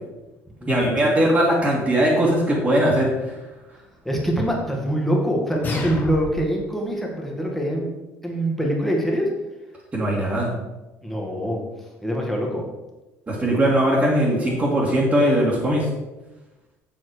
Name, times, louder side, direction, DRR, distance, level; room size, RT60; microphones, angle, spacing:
voice 1, 0.7-3.1 9.9-10.5 13.3-15.9, right 1 dB, 20° right, -6 dB, 2.2 m, -20 dB
voice 2, 4.0-7.9 8.2-9.3 11.0-11.6 12.0-12.6, equal, 5° left, -1 dB, 2.1 m, -24 dB
sound 1, 5.6-6.6, left 3 dB, 30° left, 2.0 m, -29 dB
7.6 x 7.3 x 4.8 m, 1.1 s
cardioid pair, 130°, 6 cm